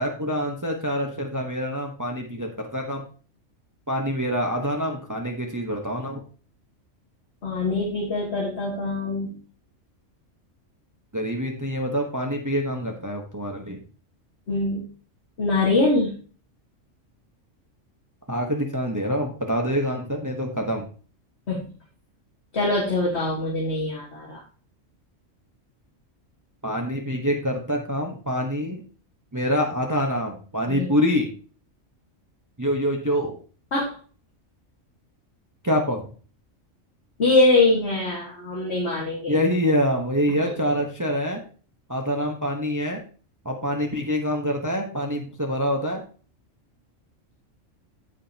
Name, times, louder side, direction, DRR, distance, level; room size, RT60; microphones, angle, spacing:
voice 1, 0.0-3.0 3.9-6.2 11.1-13.8 18.3-20.9 26.6-28.8 29.3-31.3 32.6-33.4 35.6-36.1 39.3-41.4 41.9-43.0 43.4-46.0, equal, 15° right, 2 dB, 1.1 m, -26 dB
voice 2, 7.4-9.4 14.5-14.8 15.4-16.1 21.5-21.7 22.5-24.4 30.7-30.9 33.7-34.0 37.2-39.4 40.4-40.5, left 2 dB, 55° left, -3 dB, 2.2 m, -23 dB
14.5 x 5.0 x 2.9 m, 0.40 s
omnidirectional pair, 1.3 m